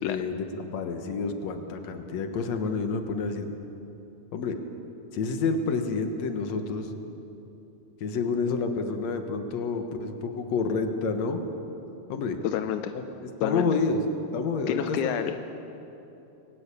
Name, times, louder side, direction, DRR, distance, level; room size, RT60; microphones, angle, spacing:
voice 1, 0.0-3.5 4.3-4.6 5.1-7.0 8.0-11.4 12.1-12.4 13.4-14.0 14.3-15.2, left 4 dB, 55° left, 6 dB, 2.3 m, -29 dB
voice 2, 12.4-12.9 13.4-13.7 14.7-15.4, left 10 dB, 80° left, 8 dB, 1.8 m, -29 dB
21.5 x 19.5 x 8.6 m, 3.0 s
omnidirectional pair, 4.3 m